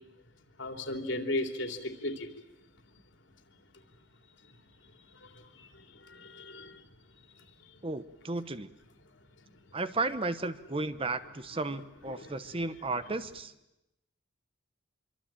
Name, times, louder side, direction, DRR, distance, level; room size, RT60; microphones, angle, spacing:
voice 1, 0.6-2.3 5.6-5.7 6.1-6.8 12.1-12.3, left 1 dB, 65° left, 6 dB, 3.2 m, -35 dB
voice 2, 7.8-8.7 9.7-13.5, right 3 dB, 25° right, 12 dB, 0.9 m, -34 dB
25.5 x 24.5 x 8.9 m, 0.89 s
head